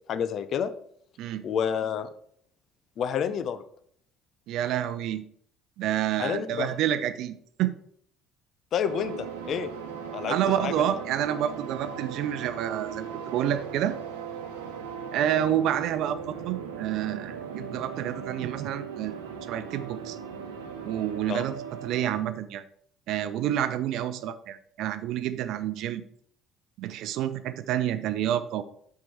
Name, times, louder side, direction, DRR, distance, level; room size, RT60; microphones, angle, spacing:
voice 1, 0.1-0.7 1.4-2.1 3.0-3.6 6.2-6.8 8.7-9.7 10.1-10.4 10.6-10.7 21.3-21.4, left 8 dB, 50° left, 12 dB, 0.6 m, -29 dB
voice 2, 4.5-5.2 5.8-7.7 10.3-14.0 15.1-19.2 19.5-20.2 20.8-22.6 23.1-26.0 26.8-28.6, right 11 dB, 60° right, 12 dB, 0.5 m, -29 dB
sound 1, 8.8-22.2, right 7 dB, 75° right, 0.9 m, -38 dB
6.1 x 4.7 x 6.1 m, 0.65 s
figure-of-eight pair, 55°, 0 cm